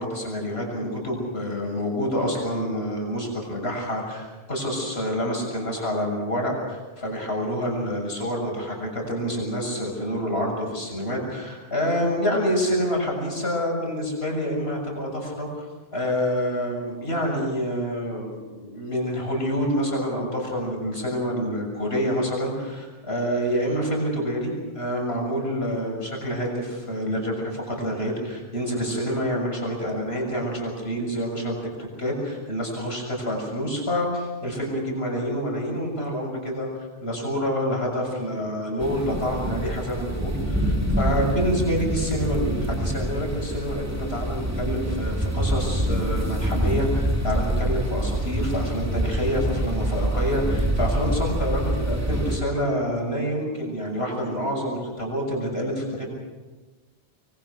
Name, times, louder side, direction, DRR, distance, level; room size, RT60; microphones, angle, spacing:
voice 1, 0.0-15.5 15.9-56.1, equal, 75° left, 0 dB, 7.2 m, -27 dB
sound 1, 38.8-52.4, right 1 dB, 15° right, 2.8 m, -26 dB
25.0 x 24.5 x 6.4 m, 1.3 s
omnidirectional pair, 1.1 m